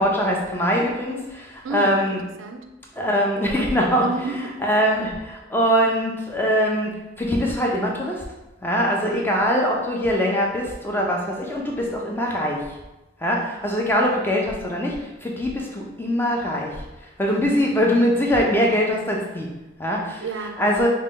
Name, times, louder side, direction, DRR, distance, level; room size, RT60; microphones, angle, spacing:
voice 1, 0.0-2.2 3.0-4.1 4.6-6.9 7.2-8.2 8.6-12.6 13.2-16.8 17.2-19.5 19.8-20.2 20.6-20.9, equal, 10° left, -1 dB, 0.4 m, -22 dB
voice 2, 1.6-2.6 4.0-4.5 9.1-9.3 20.2-20.6, right 3 dB, 80° right, 5 dB, 0.4 m, -31 dB
3.8 x 2.2 x 3.6 m, 1.0 s
head